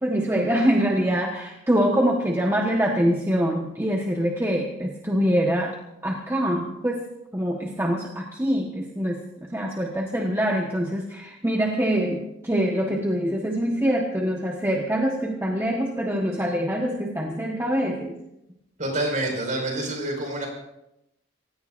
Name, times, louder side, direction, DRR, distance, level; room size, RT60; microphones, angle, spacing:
voice 1, 0.0-5.7 6.0-7.0 7.3-9.2 9.5-18.1, equal, 10° right, -1 dB, 1.2 m, -24 dB
voice 2, 18.8-20.5, right 1 dB, 35° right, 1 dB, 5.3 m, -27 dB
27.0 x 17.0 x 2.6 m, 0.86 s
head